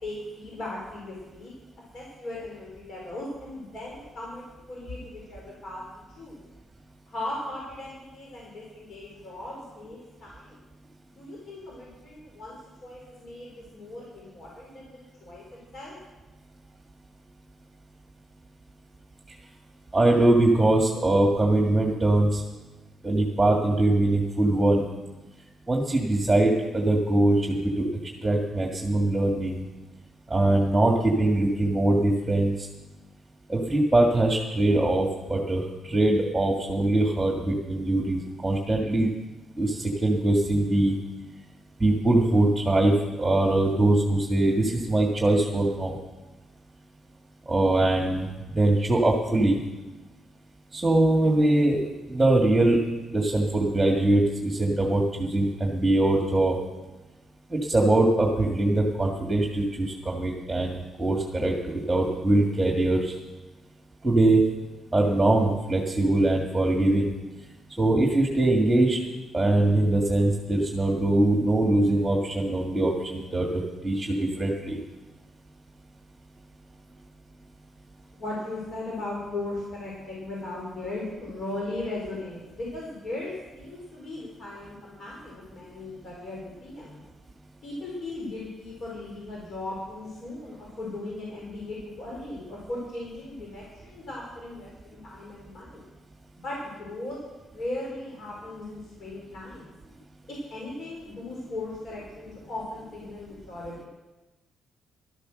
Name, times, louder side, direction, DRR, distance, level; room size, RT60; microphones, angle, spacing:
voice 1, 0.0-1.5 1.9-6.4 7.1-10.6 11.1-12.6 12.8-14.9 15.2-15.9 78.1-87.0 87.6-95.8 96.4-97.2 97.5-99.7 100.5-103.9, left 2 dB, 55° left, -4 dB, 4.6 m, -37 dB
voice 2, 19.9-22.4 23.0-24.9 25.7-27.9 28.2-29.6 30.3-32.7 33.5-39.1 39.6-40.9 41.8-46.0 47.5-49.6 50.7-51.8 52.1-52.8 53.1-56.6 57.5-63.2 64.0-64.4 64.9-67.1 67.8-69.0 69.3-74.8, right 2 dB, 15° right, 0 dB, 2.1 m, -22 dB
12.5 x 12.0 x 6.5 m, 1.1 s
cardioid pair, 90°, 0 cm